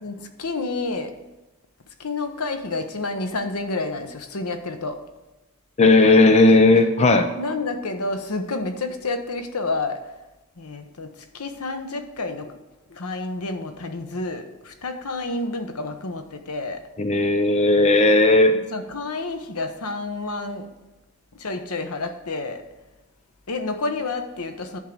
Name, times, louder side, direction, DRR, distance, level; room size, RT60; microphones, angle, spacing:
voice 1, 0.0-1.1 2.0-5.0 7.4-10.0 10.6-11.1 11.3-12.5 12.9-16.8 18.7-20.7 21.4-22.6 23.5-24.8, left 3 dB, 80° left, 7 dB, 1.0 m, -29 dB
voice 2, 5.8-7.3 17.0-18.6, left 2 dB, 30° left, 7 dB, 0.5 m, -15 dB
11.0 x 3.7 x 7.3 m, 1.0 s
head